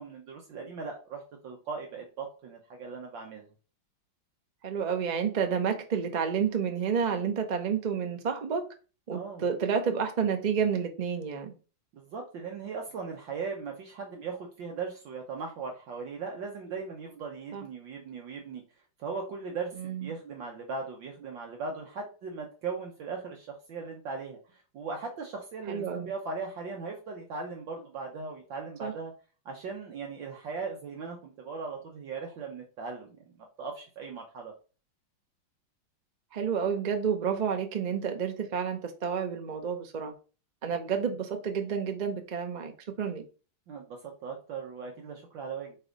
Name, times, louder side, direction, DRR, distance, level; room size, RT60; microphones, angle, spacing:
voice 1, 0.0-3.5 9.1-9.5 11.9-18.6 19.0-29.1 29.4-34.5 43.7-45.8, right 4 dB, 70° right, 1.6 m, -38 dB
voice 2, 4.6-8.7 9.1-11.5 17.5-17.6 19.8-20.1 25.7-26.1 28.8-28.9 36.3-40.1 40.6-42.7 43.0-43.2, right 7 dB, 85° right, 0.3 m, -30 dB
4.8 x 4.4 x 5.1 m
omnidirectional pair, 2.2 m